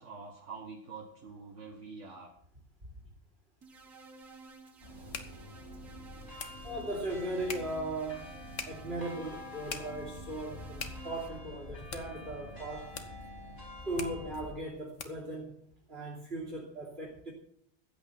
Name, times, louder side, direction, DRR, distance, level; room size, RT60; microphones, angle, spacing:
voice 1, 0.0-2.3, right 4 dB, 65° right, 0 dB, 2.0 m, -46 dB
sound 1, 3.6-11.3, right 3 dB, 85° right, 2.2 m, -53 dB
sound 2, 3.8-15.4, left 5 dB, 70° left, 1.7 m, -47 dB
sound 3, 4.8-14.5, left 1 dB, 55° left, 4.8 m, -47 dB
voice 2, 6.6-8.3 8.7-13.0 13.8-15.5 15.9-17.3, right 1 dB, 50° right, -3 dB, 3.4 m, -38 dB
14.5 x 9.0 x 5.9 m, 0.67 s
omnidirectional pair, 1.4 m